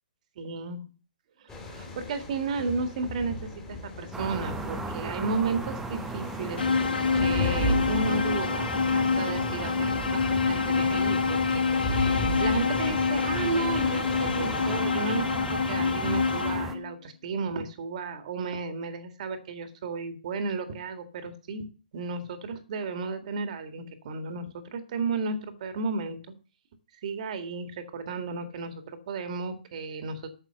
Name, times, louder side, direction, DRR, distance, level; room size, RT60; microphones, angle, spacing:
voice 1, 0.4-0.8 1.4-6.6 7.1-21.7 21.9-26.2 27.0-30.3, right 4 dB, 50° right, 8 dB, 1.9 m, -33 dB
sound 1, 1.5-14.8, left 1 dB, 15° left, 2.9 m, -36 dB
sound 2, 4.1-16.7, right 3 dB, 5° right, 0.9 m, -37 dB
sound 3, 6.6-16.9, left 5 dB, 85° left, 1.0 m, -26 dB
8.9 x 6.7 x 7.0 m, 0.35 s
hypercardioid pair, 150°, 5 cm